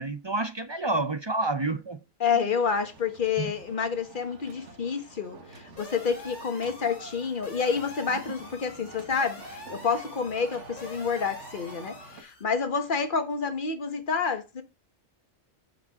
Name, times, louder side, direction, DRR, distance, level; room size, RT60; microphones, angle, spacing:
voice 1, 0.0-2.0 3.4-3.5, right 2 dB, 35° right, 0.4 m, -29 dB
voice 2, 2.2-14.6, left 5 dB, 45° left, 1.4 m, -29 dB
sound 1, 2.6-12.2, right 3 dB, 80° right, 1.7 m, -48 dB
sound 2, 5.8-12.4, left 2 dB, 90° left, 3.2 m, -46 dB
12.0 x 5.0 x 3.6 m
omnidirectional pair, 1.2 m